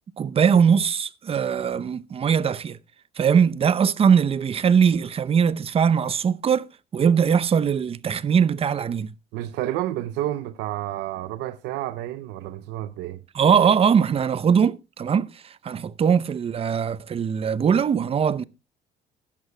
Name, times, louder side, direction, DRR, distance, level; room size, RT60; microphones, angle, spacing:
voice 1, 0.2-2.8 3.2-9.1 13.3-15.3 15.6-18.4, right 7 dB, 35° right, 0.7 m, -21 dB
voice 2, 9.3-13.2, right 14 dB, 90° right, 0.6 m, -30 dB
17.0 x 11.0 x 2.2 m
cardioid pair, 110°, 17 cm